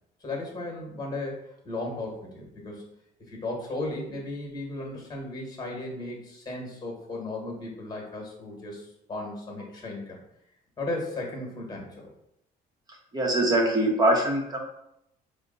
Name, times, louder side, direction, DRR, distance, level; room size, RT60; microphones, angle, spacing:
voice 1, 0.2-2.9 3.3-10.2 10.8-12.1, left 2 dB, 25° left, 0 dB, 1.4 m, -35 dB
voice 2, 13.1-14.7, right 1 dB, 25° right, 0 dB, 1.1 m, -23 dB
4.2 x 2.2 x 4.0 m, 0.79 s
cardioid pair, 110°, 17 cm